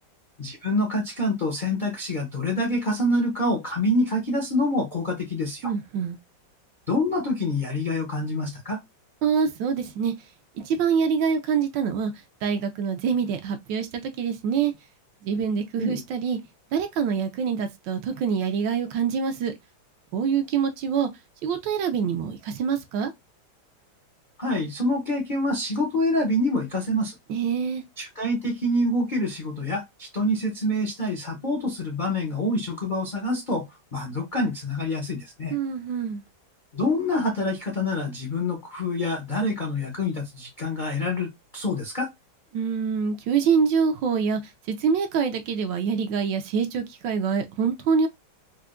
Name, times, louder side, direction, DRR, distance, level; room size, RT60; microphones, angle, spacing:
voice 1, 0.4-5.7 6.9-8.8 15.8-16.0 24.4-27.1 28.0-33.7 33.9-35.5 36.7-42.1, left 1 dB, 65° left, 0.4 m, -26 dB
voice 2, 5.6-6.2 9.2-10.1 10.6-12.1 12.4-14.7 15.2-16.4 16.7-19.6 20.1-21.1 21.4-23.1 27.3-27.8 35.5-36.2 42.5-44.4 44.7-48.1, right 6 dB, 75° right, 1.2 m, -25 dB
4.6 x 2.1 x 2.4 m
omnidirectional pair, 2.2 m